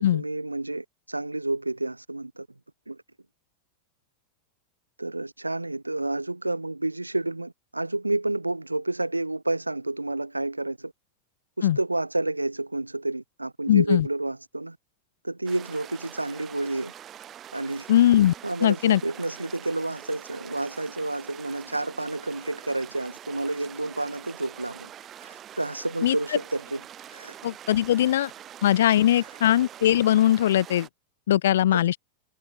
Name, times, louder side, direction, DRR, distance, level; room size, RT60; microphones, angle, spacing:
voice 1, 0.1-2.5 2.9-3.0 5.0-10.9 11.6-14.8 15.2-16.9 17.5-17.9 18.4-24.9 25.2-26.8 27.1-27.3 31.7-31.8, right 2 dB, 85° right, 0.5 m, -30 dB
voice 2, 13.7-14.1 17.9-18.3 18.6-19.0 26.0-26.2 27.4-28.3 28.6-30.9 31.3-32.0, left 12 dB, 60° left, 0.5 m, -20 dB
sound 1, 15.5-30.9, right 10 dB, 30° right, 4.9 m, -45 dB
figure-of-eight pair, 90°, 0 cm